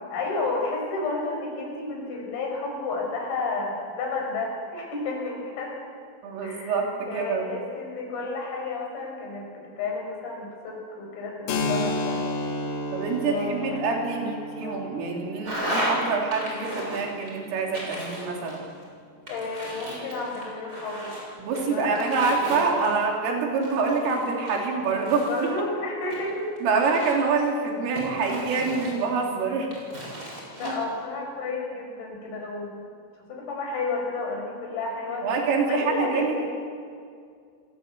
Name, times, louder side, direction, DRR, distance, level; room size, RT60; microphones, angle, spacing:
voice 1, 0.1-5.7 6.4-6.8 7.1-12.2 13.2-13.9 14.2-14.8 19.3-21.1 21.5-22.8 25.3-26.5 30.5-32.8 33.3-35.3 35.7-36.5, left 3 dB, 85° left, 0 dB, 8.2 m, -32 dB
voice 2, 6.2-7.6 12.9-18.6 21.4-25.6 26.6-29.7 30.6-30.7 35.2-36.5, right 4 dB, 80° right, 1 dB, 5.8 m, -26 dB
Keyboard (musical), 11.5-18.9, left 2 dB, 65° left, 4.8 m, -33 dB
sound 1, 15.4-16.0 16.3-17.3 17.7-18.8 19.3-21.2 21.5-23.1 23.6-25.5 26.1-27.3 28.0-29.3 29.7-30.7, equal, 20° right, 7.1 m, -34 dB
29.0 x 20.0 x 8.2 m, 2.2 s
omnidirectional pair, 5.8 m